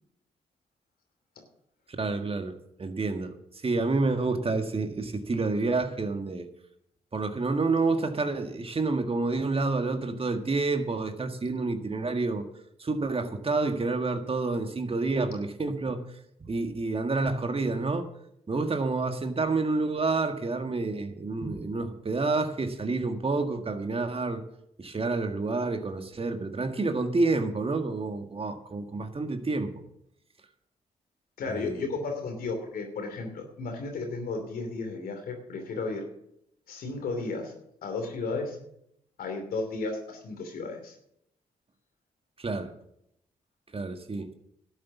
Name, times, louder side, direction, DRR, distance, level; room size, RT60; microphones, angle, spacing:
voice 1, 2.0-3.3 3.6-6.5 7.1-12.5 12.8-16.0 16.4-18.1 18.5-24.4 24.8-29.7 31.5-31.9 42.4-42.7 43.7-44.3, right 3 dB, 40° right, 7 dB, 1.8 m, -29 dB
voice 2, 31.4-36.0 36.7-37.5 37.8-38.6 39.2-40.9, left 3 dB, 75° left, 4 dB, 2.9 m, -33 dB
12.0 x 8.3 x 7.2 m, 0.77 s
supercardioid pair, 45°, 15 cm